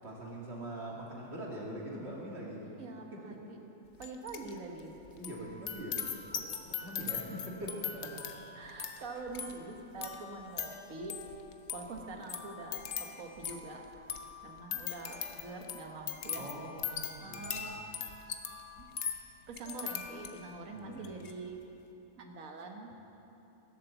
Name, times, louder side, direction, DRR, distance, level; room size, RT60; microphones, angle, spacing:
voice 1, 0.0-2.6 3.1-3.4 5.2-6.1 6.3-6.4 6.8-8.1 8.6-8.8 16.4-17.7 20.7-21.2, right 1 dB, 40° right, -4 dB, 2.5 m, -43 dB
voice 2, 2.7-3.6 4.0-4.9 8.6-11.1 11.7-12.8 13.2-13.8 14.4-16.5 17.2-17.8 18.8-18.9 19.5-21.6 22.2-22.9, right 3 dB, 55° right, 2 dB, 1.6 m, -44 dB
sound 1, 4.0-4.5 4.8-20.6 21.0-21.3, left 7 dB, 55° left, 0.9 m, -41 dB
15.5 x 7.5 x 7.1 m, 3.0 s
omnidirectional pair, 1.8 m